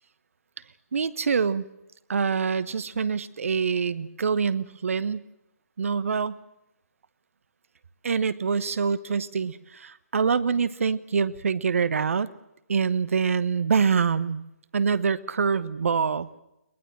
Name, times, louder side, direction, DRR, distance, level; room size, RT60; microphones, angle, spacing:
voice 1, 0.9-1.6 2.1-5.3 5.8-6.4 8.0-12.3 12.7-14.4 14.7-16.3, right 6 dB, 60° right, 16 dB, 1.1 m, -25 dB
21.5 x 20.5 x 7.5 m, 0.87 s
figure-of-eight pair, 140°, 8 cm